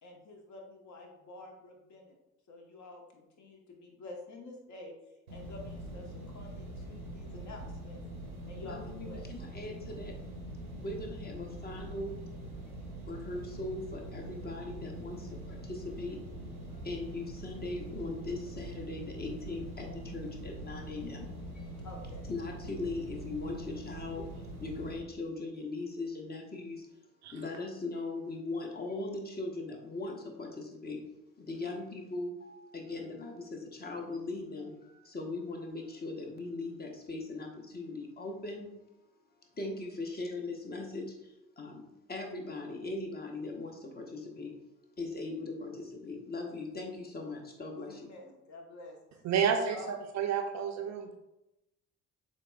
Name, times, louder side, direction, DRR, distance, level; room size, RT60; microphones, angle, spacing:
voice 1, 0.0-2.1 2.5-4.9 5.3-8.0 8.5-9.2 21.8-22.2 47.9-49.0 49.4-50.0, left 2 dB, 40° left, 1 dB, 1.1 m, -48 dB
sound 1, 5.3-24.9, right 1 dB, 85° right, 0.8 m, -43 dB
voice 2, 8.6-10.1 10.7-12.2 13.0-16.2 16.7-21.8 22.3-26.9 27.3-31.0 31.4-38.7 39.5-44.5 45.0-48.1, left 2 dB, 25° left, 2 dB, 0.9 m, -40 dB
voice 3, 49.2-49.8 50.1-51.1, right 7 dB, 40° right, 5 dB, 0.5 m, -29 dB
7.3 x 3.1 x 2.3 m, 0.91 s
figure-of-eight pair, 50°, 41 cm